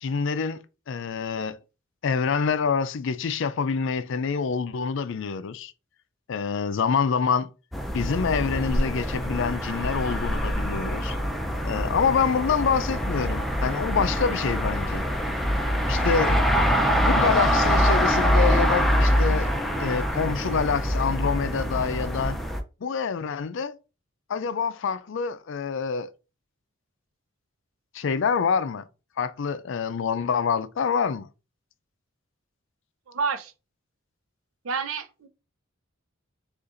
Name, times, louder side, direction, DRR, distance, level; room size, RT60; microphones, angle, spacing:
voice 1, 0.0-1.6 2.0-5.7 6.3-7.5 7.9-11.2 11.6-15.0 15.9-16.4 16.8-19.5 19.8-22.4 22.8-23.8 24.3-26.1 27.9-28.8 29.2-31.3, left 6 dB, 65° left, 0.4 m, -26 dB
sound 1, 7.7-22.6, equal, ahead, 0.4 m, -24 dB
voice 2, 33.1-33.5 34.6-35.3, right 5 dB, 90° right, 0.6 m, -30 dB
6.6 x 2.5 x 2.5 m
head